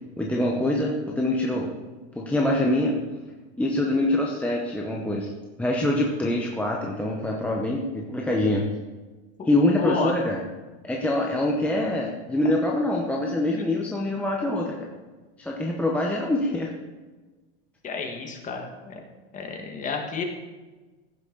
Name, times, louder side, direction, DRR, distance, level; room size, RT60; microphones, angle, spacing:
voice 1, 0.2-1.8 2.2-3.0 3.6-5.3 5.6-8.6 9.5-10.4 10.8-14.9 15.4-16.7, left 1 dB, 5° left, -2 dB, 0.7 m, -25 dB
voice 2, 9.8-10.1 17.8-18.9 19.3-20.2, left 4 dB, 25° left, 2 dB, 1.5 m, -30 dB
15.0 x 6.3 x 3.8 m, 1.3 s
supercardioid pair, 145°, 33 cm